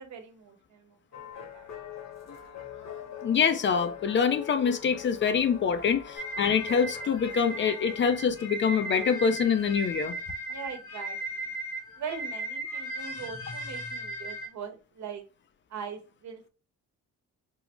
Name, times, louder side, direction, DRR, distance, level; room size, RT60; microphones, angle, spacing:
voice 1, 0.0-2.0 5.6-5.9 10.5-11.5 12.0-15.2 15.7-16.5, right 6 dB, 65° right, 1.0 m, -42 dB
sound 1, 1.1-10.3, left 9 dB, 60° left, 1.1 m, -43 dB
voice 2, 3.2-10.1, left 6 dB, 40° left, 0.4 m, -25 dB
sound 2, 6.2-14.5, right 1 dB, 80° left, 1.2 m, -37 dB
3.8 x 2.0 x 3.0 m
cardioid pair, 90°, 30 cm